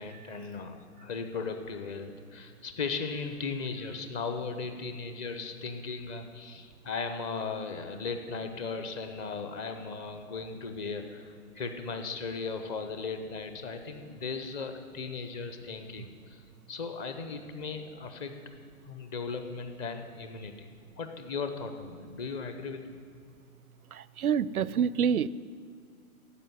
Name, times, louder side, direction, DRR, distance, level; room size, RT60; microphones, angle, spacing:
voice 1, 0.0-16.4 16.7-18.3 18.9-20.7 21.0-23.0, left 4 dB, 25° left, 7 dB, 0.8 m, -37 dB
voice 2, 23.9-25.3, right 7 dB, 80° right, 20 dB, 0.5 m, -27 dB
12.0 x 7.5 x 9.4 m, 2.1 s
figure-of-eight pair, 120°, 43 cm